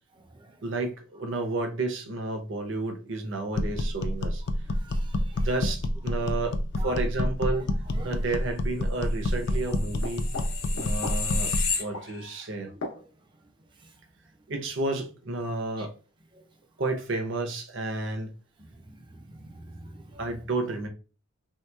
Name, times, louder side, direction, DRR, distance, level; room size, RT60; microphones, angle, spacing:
voice 1, 0.6-4.4 5.4-6.6 6.8-7.7 8.0-10.3 10.7-11.5 11.8-12.7 14.5-15.9 16.8-18.3 20.2-20.9, right 2 dB, 55° right, 0.7 m, -31 dB
sound 1, 3.5-11.7, left 1 dB, 50° left, 0.3 m, -28 dB
voice 2, 4.7-5.5 6.8-7.0 7.5-7.7 7.9-8.1 10.5-10.6 12.6-12.8 13.8-13.9 15.8-15.9 16.3-16.4 18.6-20.2, right 1 dB, 20° right, 0.4 m, -45 dB
sound 2, 9.5-12.4 12.8-13.0, left 5 dB, 80° left, 0.8 m, -32 dB
3.3 x 2.9 x 2.2 m
head